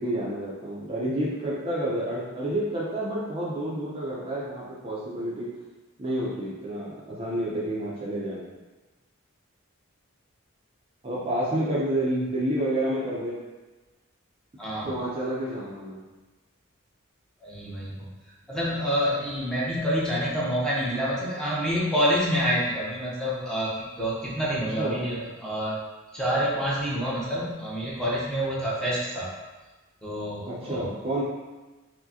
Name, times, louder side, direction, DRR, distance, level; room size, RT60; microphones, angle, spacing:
voice 1, 0.0-5.5 6.0-8.5 11.0-13.4 14.8-16.0 24.8-25.0 30.5-31.2, right 1 dB, 30° right, -6 dB, 0.5 m, -29 dB
voice 2, 14.6-14.9 17.4-18.1 18.5-25.8 26.1-29.3 30.0-30.9, equal, 5° left, -8 dB, 0.7 m, -27 dB
4.6 x 2.1 x 2.7 m, 1.2 s
head